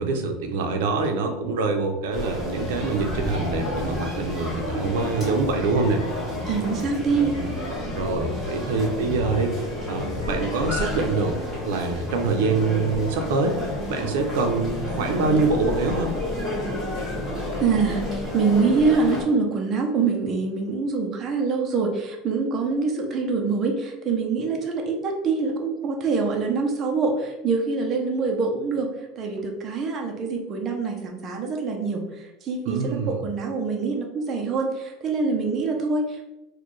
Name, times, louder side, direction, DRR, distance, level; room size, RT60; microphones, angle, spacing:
voice 1, 0.0-6.0 6.8-6.9 7.9-9.5 9.8-11.4 11.7-13.6 13.9-16.1 32.6-33.2, right 3 dB, 85° right, 4 dB, 0.6 m, -25 dB
sound 1, 2.1-19.2, left 1 dB, 5° left, 1.3 m, -30 dB
voice 2, 6.5-7.4 17.6-32.1 32.4-36.3, right 4 dB, 25° right, 1 dB, 0.5 m, -25 dB
4.2 x 2.2 x 3.1 m, 0.95 s
cardioid pair, 170°, 0 cm